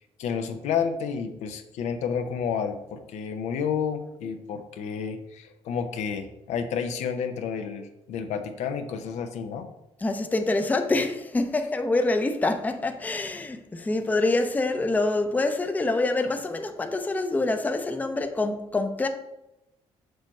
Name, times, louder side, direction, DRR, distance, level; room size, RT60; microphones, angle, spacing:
voice 1, 0.2-9.7, left 7 dB, 80° left, 0.7 m, -30 dB
voice 2, 10.0-19.1, left 2 dB, 15° left, 0.5 m, -26 dB
6.4 x 3.1 x 5.2 m
cardioid pair, 120°, 12 cm